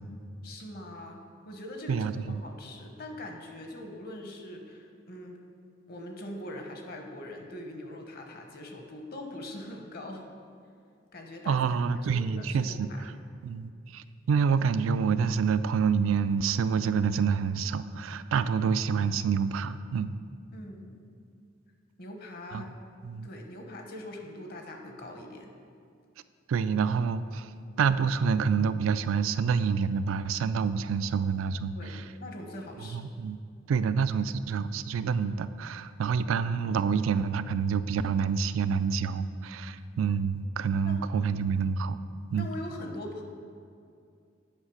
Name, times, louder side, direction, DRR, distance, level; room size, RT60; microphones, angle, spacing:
voice 1, 0.4-5.4 5.9-10.3 11.1-11.6 12.0-13.0 20.5-21.1 22.0-22.7 23.2-25.5 31.7-33.1 40.8-41.0 42.4-43.2, left 1 dB, 50° left, 3 dB, 1.0 m, -42 dB
voice 2, 1.9-2.4 11.5-13.1 13.4-20.2 22.5-22.6 23.0-23.3 26.5-27.5 27.8-32.0 32.9-33.4 33.7-42.0 42.3-42.5, right 6 dB, 90° right, 13 dB, 0.3 m, -27 dB
8.9 x 5.7 x 4.8 m, 2.4 s
head